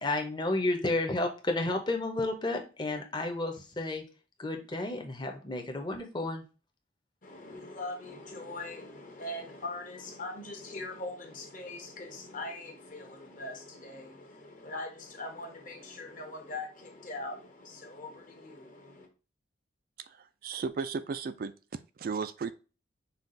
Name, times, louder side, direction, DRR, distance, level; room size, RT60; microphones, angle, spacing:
voice 1, 0.0-4.0 4.4-6.4, left 2 dB, 25° left, 0.8 m, -31 dB
voice 2, 7.2-19.1, left 2 dB, 45° left, 1.2 m, -41 dB
voice 3, 20.1-21.5 22.0-22.5, right 5 dB, 50° right, 0.3 m, -35 dB
5.7 x 2.4 x 3.8 m
head